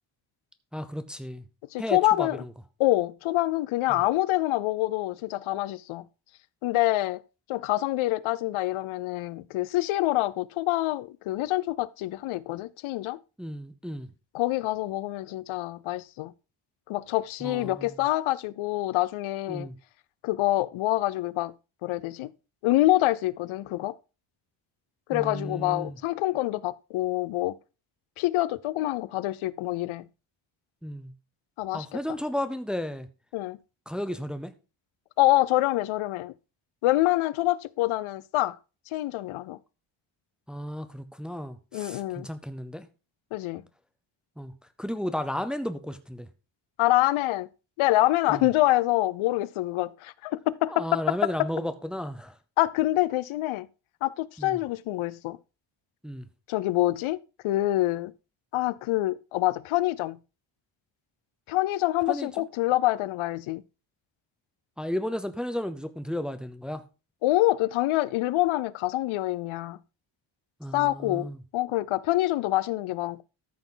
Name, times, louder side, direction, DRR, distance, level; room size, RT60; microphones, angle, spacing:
voice 1, 0.7-1.4 1.8-2.5 3.9-4.0 13.4-14.1 17.4-18.0 19.5-19.7 25.1-26.0 30.8-31.1 31.7-33.1 33.9-34.5 40.5-42.9 44.4-44.5 44.8-46.3 48.3-48.5 50.7-52.4 54.4-54.6 56.0-56.3 62.1-62.3 64.8-66.8 70.6-71.4, left 1 dB, ahead, 0.5 m, -33 dB
voice 2, 1.7-2.4 2.8-6.0 6.6-7.2 7.5-13.2 14.3-16.3 16.9-19.7 20.2-21.5 21.8-22.3 22.6-23.9 25.1-27.6 28.2-30.0 31.6-31.9 33.3-33.6 35.2-36.3 36.8-38.6 38.9-39.6 41.7-42.3 43.3-43.6 46.8-47.5 47.8-51.5 52.6-53.7 54.0-55.4 56.5-57.2 57.4-58.1 58.5-60.2 61.5-63.6 67.2-69.8 70.7-71.3 71.5-73.2, left 17 dB, 90° left, 0.6 m, -26 dB
13.5 x 6.0 x 3.8 m
cardioid pair, 170°, 47 cm